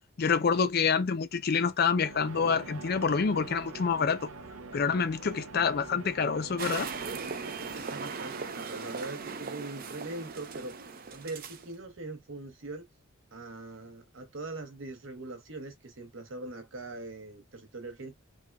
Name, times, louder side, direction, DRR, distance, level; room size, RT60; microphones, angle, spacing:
voice 1, 0.2-4.3 4.7-6.9, left 5 dB, 45° left, 0.4 m, -27 dB
sound 1, 1.7-8.6, right 3 dB, 90° right, 0.6 m, -45 dB
sound 2, 6.6-11.7, right 5 dB, 45° right, 0.4 m, -39 dB
voice 2, 7.7-10.8 11.1-12.9 13.3-18.1, right 2 dB, 70° right, 0.9 m, -41 dB
3.4 x 2.2 x 2.2 m
head